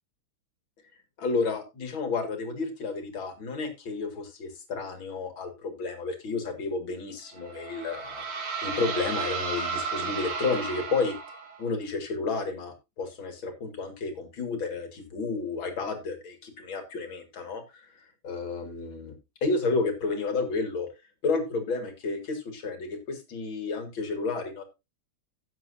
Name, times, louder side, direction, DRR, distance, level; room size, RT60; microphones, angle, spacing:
voice 1, 1.2-8.2 8.6-11.2 11.6-17.6 18.2-19.2 19.4-20.9 21.2-24.6, left 4 dB, 65° left, 6 dB, 2.8 m, -31 dB
sound 1, 7.3-11.7, right 5 dB, 75° right, 2.8 m, -33 dB
16.0 x 7.4 x 2.7 m, 0.24 s
omnidirectional pair, 2.4 m